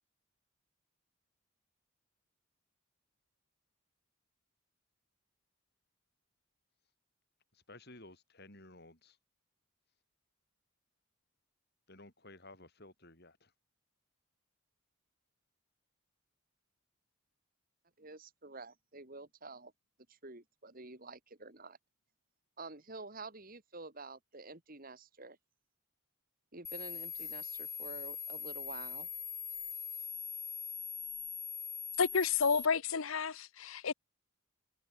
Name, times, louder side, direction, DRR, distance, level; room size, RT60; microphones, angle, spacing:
voice 1, 7.5-9.2 11.9-13.5, left 2 dB, 50° left, 6.9 m, -55 dB
voice 2, 18.0-19.7 20.1-21.8 22.6-25.4 26.5-29.1, right 3 dB, 40° right, 2.4 m, -49 dB
sound 1, 26.6-32.6, left 7 dB, 15° left, 1.0 m, -42 dB
voice 3, 32.0-33.9, left 5 dB, 70° left, 0.9 m, -30 dB
head